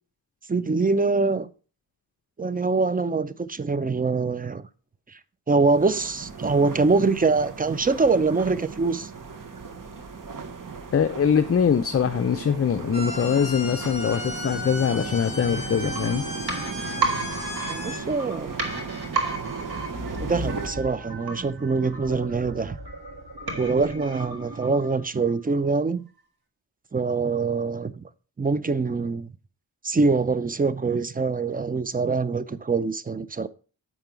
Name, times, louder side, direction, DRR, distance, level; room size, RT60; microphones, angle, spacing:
voice 1, 0.5-1.5 2.4-4.7 5.5-9.1 17.7-18.6 20.2-22.8 23.6-26.1 26.9-28.0 28.4-29.3 29.8-33.5, right 4 dB, 25° right, 0.5 m, -24 dB
sound 1, 5.7-20.7, right 5 dB, 60° right, 1.1 m, -37 dB
voice 2, 10.9-16.3, left 7 dB, 40° left, 0.5 m, -23 dB
sound 2, 12.9-18.0, left 1 dB, 15° left, 2.5 m, -35 dB
sound 3, 15.5-25.2 25.5-25.6, right 3 dB, 80° right, 1.5 m, -33 dB
7.5 x 5.2 x 4.5 m
cardioid pair, 65°, 37 cm